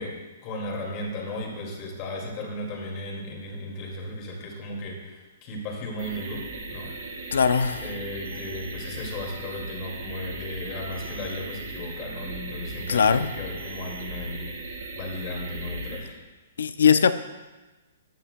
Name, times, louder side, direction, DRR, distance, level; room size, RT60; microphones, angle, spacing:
voice 1, 0.0-7.3 7.8-16.2, left 1 dB, 35° left, 0 dB, 2.2 m, -35 dB
sound 1, 6.0-16.0, right 2 dB, 80° right, 3.4 m, -37 dB
voice 2, 7.3-7.8 12.9-13.3 16.6-17.1, left 6 dB, 85° left, 12 dB, 0.5 m, -20 dB
14.0 x 8.9 x 2.2 m, 1.2 s
hypercardioid pair, 145°, 0 cm